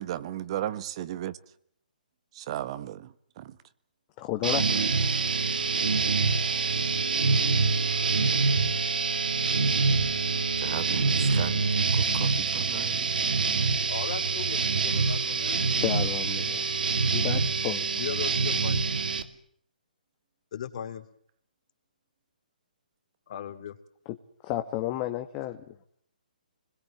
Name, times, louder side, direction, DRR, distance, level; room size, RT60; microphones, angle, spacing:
voice 1, 0.0-1.4 2.3-3.6 10.6-13.1, right 12 dB, 40° right, 1.3 m, -36 dB
voice 2, 4.2-4.9 15.8-16.6 17.1-17.8 24.4-25.6, left 14 dB, 30° left, 1.5 m, -31 dB
sound 1, 4.4-19.2, right 4 dB, 70° right, 2.6 m, -26 dB
voice 3, 13.9-15.6 17.9-18.8 20.5-21.0 23.3-23.8, left 9 dB, 50° left, 3.2 m, -37 dB
26.5 x 21.5 x 7.6 m
hypercardioid pair, 145°, 5 cm